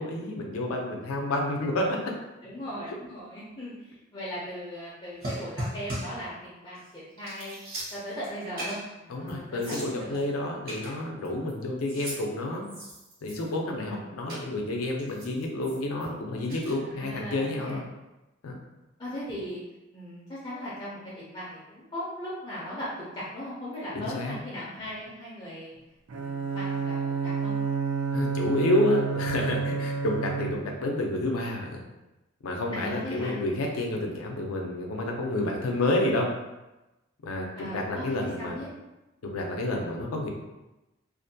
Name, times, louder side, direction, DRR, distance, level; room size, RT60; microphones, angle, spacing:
voice 1, 0.0-2.1 9.1-12.7 13.2-17.8 18.4-18.6 23.9-24.4 28.1-31.8 32.4-36.3 37.2-37.5 37.7-38.6 39.3-40.3, left 1 dB, 90° left, 0 dB, 0.5 m, -29 dB
voice 2, 2.4-7.6 7.9-10.3 13.8-14.0 16.8-17.9 19.0-19.6 19.9-25.7 26.1-26.9 27.2-27.5 32.7-33.4 37.6-38.7, equal, 25° left, -8 dB, 0.4 m, -38 dB
sound 1, 5.2-6.2 6.8-6.9 7.2-8.3 8.6-8.9 9.3-9.4 9.6-10.2 10.7-11.5 11.8-12.2 12.6-13.6 14.3-14.4 15.0-16.1 16.5-16.7, right 1 dB, 45° right, 0.8 m, -38 dB
Bowed string instrument, 26.1-30.9, right 5 dB, 85° right, 0.4 m, -30 dB
2.5 x 2.2 x 2.6 m, 1.0 s
head